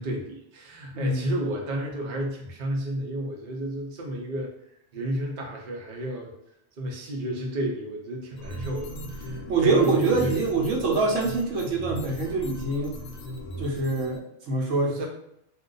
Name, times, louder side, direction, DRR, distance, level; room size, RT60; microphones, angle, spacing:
voice 1, 0.0-4.5 4.9-6.3 6.8-10.4 14.9-15.1, right 1 dB, 45° right, 0 dB, 0.6 m, -32 dB
voice 2, 0.9-1.3 9.5-13.0 13.6-15.0, right 3 dB, 85° right, 0 dB, 1.0 m, -25 dB
sound 1, 8.4-14.2, right 1 dB, 65° left, 0.8 m, -38 dB
2.4 x 2.2 x 3.8 m, 0.77 s
omnidirectional pair, 1.3 m